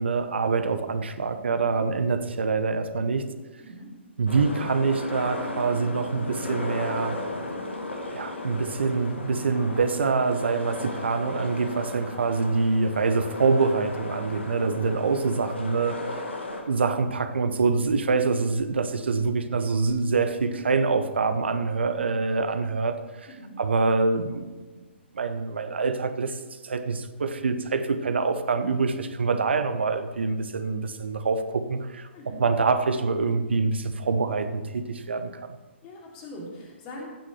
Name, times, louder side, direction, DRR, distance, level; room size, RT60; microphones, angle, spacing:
voice 1, 0.0-3.2 4.2-7.2 8.1-16.2 16.7-23.0 23.6-24.5 25.1-32.1 32.4-35.5, right 4 dB, 60° right, 9 dB, 1.1 m, -25 dB
voice 2, 3.6-3.9 23.3-23.6 32.1-32.4 35.8-37.1, left 1 dB, 25° left, -2 dB, 3.1 m, -42 dB
sound 1, 4.3-16.6, left 2 dB, 70° left, 1.9 m, -35 dB
15.5 x 6.3 x 5.8 m, 1.3 s
figure-of-eight pair, 125°, 7 cm